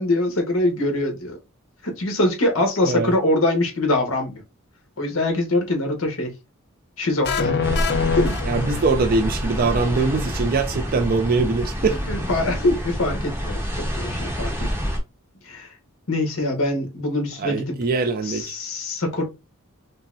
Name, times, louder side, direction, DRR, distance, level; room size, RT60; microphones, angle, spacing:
voice 1, 0.0-1.4 1.8-4.4 5.0-6.3 7.0-7.6 8.2-8.4 8.7-8.8 11.9-14.9 15.4-15.7 16.1-17.8 18.2-19.2, left 1 dB, 70° left, 1.2 m, -23 dB
sound 1, 7.2-9.2, left 6 dB, 50° left, 0.6 m, -24 dB
sound 2, 7.6-15.0, equal, 10° right, 0.9 m, -27 dB
voice 2, 8.5-12.0 17.4-18.5, right 4 dB, 40° right, 0.4 m, -22 dB
5.3 x 2.1 x 2.6 m
head